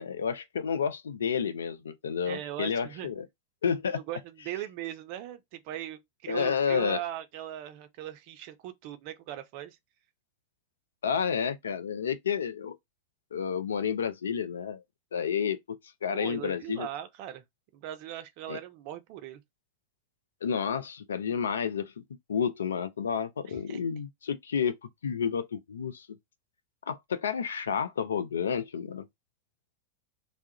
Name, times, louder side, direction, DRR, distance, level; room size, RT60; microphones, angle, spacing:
voice 1, 0.0-3.2 3.6-4.0 6.3-7.0 11.0-12.8 13.3-14.8 15.1-16.9 18.5-18.6 20.4-22.0 22.3-24.8 25.0-26.1 26.9-29.1, left 7 dB, 65° left, 0.3 m, -30 dB
voice 2, 2.3-3.1 3.9-9.8 16.1-17.4 17.7-19.4 23.5-23.8, right 12 dB, 45° right, 0.5 m, -39 dB
2.2 x 2.0 x 2.7 m
figure-of-eight pair, 90°, 0 cm